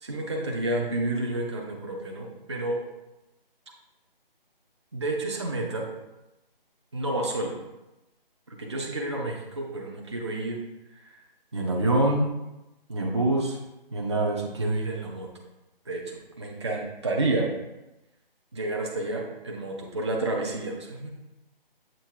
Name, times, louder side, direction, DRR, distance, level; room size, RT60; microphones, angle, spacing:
voice 1, 0.0-2.8 4.9-5.9 6.9-7.6 8.6-10.6 11.5-12.3 12.9-13.6 13.9-15.3 15.9-17.5 18.5-21.1, right 2 dB, 30° right, 0 dB, 0.6 m, -28 dB
7.5 x 3.1 x 4.5 m, 0.97 s
figure-of-eight pair, 155°, 29 cm